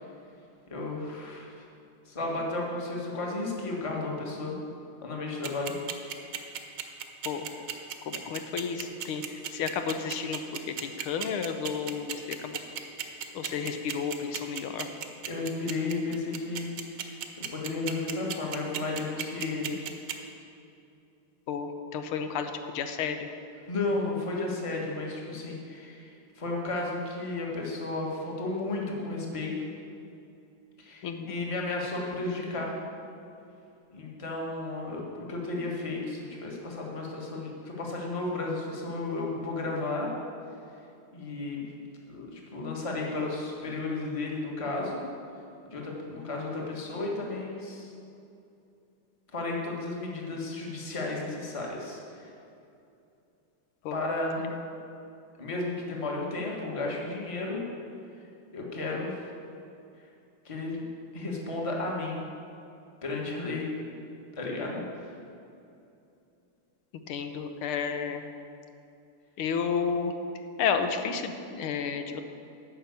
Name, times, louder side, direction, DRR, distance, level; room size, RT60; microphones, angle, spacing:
voice 1, 0.7-1.6 2.1-4.5 5.0-5.7 15.3-17.2 17.5-19.7 23.7-29.5 30.8-32.8 33.9-40.1 41.1-41.7 42.1-45.0 45.7-47.9 49.3-52.3 53.9-54.5 55.4-57.6 58.5-59.2 60.4-60.8 61.1-62.3 63.0-63.7 64.4-65.1, left 2 dB, 20° left, -2 dB, 1.2 m, -33 dB
sound 1, 5.4-20.1, right 10 dB, 65° right, 1.4 m, -34 dB
voice 2, 8.0-12.6 13.3-14.9 21.5-23.3 31.0-31.3 53.8-54.0 54.4-54.5 67.1-68.3 69.4-70.1 70.6-72.2, left 6 dB, 85° left, 7 dB, 1.6 m, -32 dB
9.6 x 5.9 x 8.2 m, 2.6 s
omnidirectional pair, 2.3 m